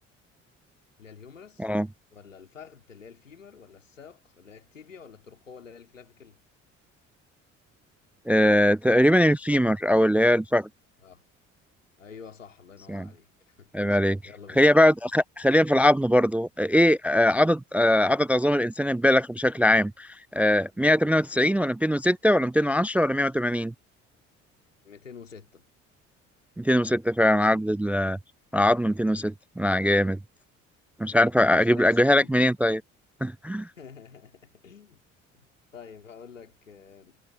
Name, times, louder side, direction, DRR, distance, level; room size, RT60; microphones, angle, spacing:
voice 1, 1.0-1.7 2.1-6.4 11.0-11.2 12.0-14.6 24.8-25.6 31.4-32.4 33.8-35.0 35.3-37.2, left 6 dB, 85° left, 3.2 m, -48 dB
voice 2, 8.3-10.7 12.9-13.1 13.7-14.2 14.6-23.7 26.6-28.2 28.5-30.2 31.0-32.8 33.2-33.7, left 1 dB, 5° right, 0.3 m, -21 dB
figure-of-eight pair, 50°, 37 cm